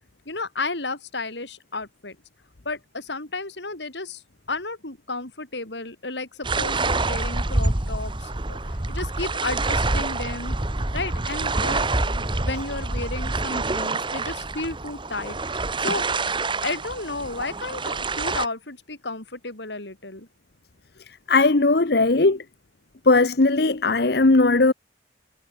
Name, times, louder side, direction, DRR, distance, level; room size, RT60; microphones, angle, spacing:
voice 1, 0.2-2.2 2.6-4.2 4.5-10.6 10.9-16.0 16.6-20.3, left 3 dB, 75° left, 4.9 m, -33 dB
sound 1, 6.4-18.5, right 3 dB, 25° right, 1.5 m, -26 dB
voice 2, 21.3-22.4 23.1-24.7, left 3 dB, 60° left, 1.0 m, -18 dB
head